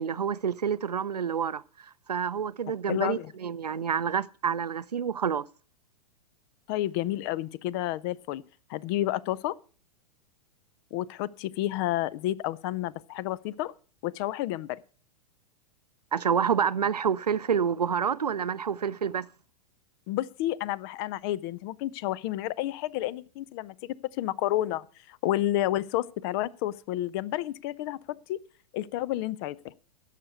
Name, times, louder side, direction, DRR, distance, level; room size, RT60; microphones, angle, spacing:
voice 1, 0.0-5.5 16.1-19.3, right 7 dB, 80° right, 0.5 m, -28 dB
voice 2, 2.9-3.3 6.7-8.4 8.7-9.6 10.9-13.7 14.0-14.8 20.1-28.4 28.7-29.7, left 14 dB, 35° left, 0.5 m, -30 dB
11.0 x 6.6 x 7.9 m
figure-of-eight pair, 100°, 20 cm